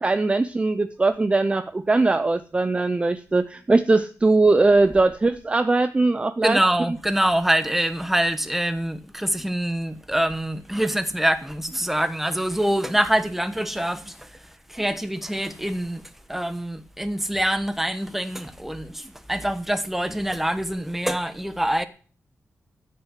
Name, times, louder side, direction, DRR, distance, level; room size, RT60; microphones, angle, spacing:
voice 1, 0.0-6.6, right 3 dB, 20° right, 0.6 m, -20 dB
voice 2, 6.4-14.4 14.7-21.9, right 1 dB, 5° right, 1.1 m, -25 dB
14.0 x 6.5 x 8.2 m
wide cardioid pair, 155°, 6 cm